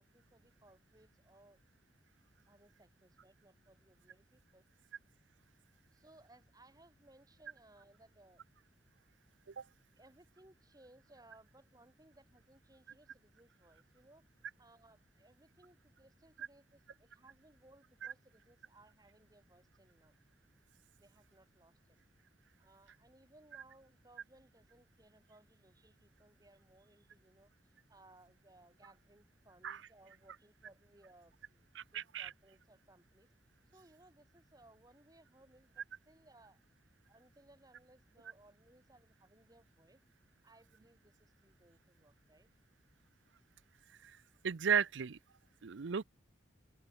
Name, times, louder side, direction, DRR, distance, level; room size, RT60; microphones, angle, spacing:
voice 1, 0.0-1.6 2.5-4.6 5.9-8.4 10.0-14.2 14.6-20.1 21.0-22.0 22.6-27.5 27.9-31.7 31.9-33.3 33.7-36.6 37.1-40.0 40.4-42.5, right 1 dB, 20° right, 6.4 m, -64 dB
voice 2, 31.7-32.3 44.0-44.1 44.4-45.2 45.6-46.0, right 7 dB, 80° right, 0.6 m, -34 dB
open air
head